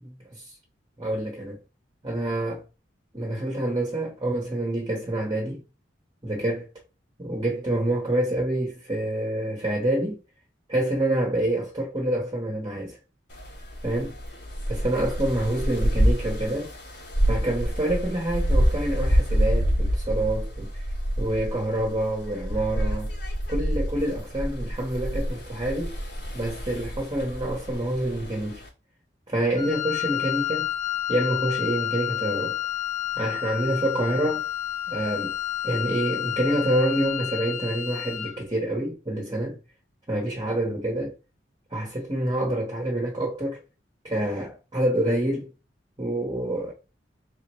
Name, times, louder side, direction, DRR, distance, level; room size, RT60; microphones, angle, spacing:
voice 1, 1.0-1.6 2.0-2.6 3.1-5.6 6.2-6.7 7.2-10.2 10.7-13.0 13.8-14.2 14.7-16.7 17.3-20.8 21.2-23.1 23.5-25.9 26.3-28.6 29.3-30.7 31.1-32.6 33.2-34.4 34.9-35.4 35.6-39.6 40.1-41.2 41.7-43.6 44.0-45.5 46.0-46.7, right 1 dB, 25° right, 1.0 m, -27 dB
sound 1, 13.3-28.7, equal, 85° left, 2.1 m, -27 dB
Wind instrument woodwind instrument, 29.5-38.4, left 12 dB, 45° left, 0.6 m, -30 dB
4.1 x 3.8 x 3.1 m
head